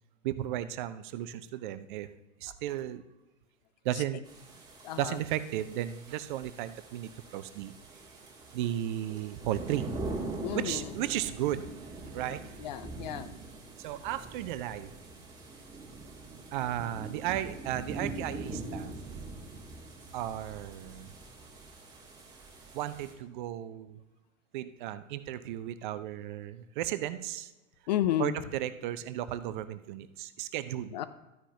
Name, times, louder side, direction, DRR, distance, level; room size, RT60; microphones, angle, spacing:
voice 1, 0.2-2.1 2.4-3.0 3.8-4.2 5.0-7.7 8.5-9.9 10.5-12.7 13.8-14.9 16.5-18.9 20.1-21.1 22.7-24.0 24.5-27.5 28.2-31.0, right 12 dB, 40° right, 13 dB, 0.6 m, -35 dB
sound 1, 4.2-23.1, right 2 dB, 10° right, 2.3 m, -43 dB
voice 2, 4.8-5.2 10.4-10.9 12.6-13.3 27.9-28.4 30.9-31.1, left 12 dB, 35° left, 12 dB, 0.4 m, -32 dB
13.5 x 9.8 x 2.7 m, 1.0 s
figure-of-eight pair, 95°, 39 cm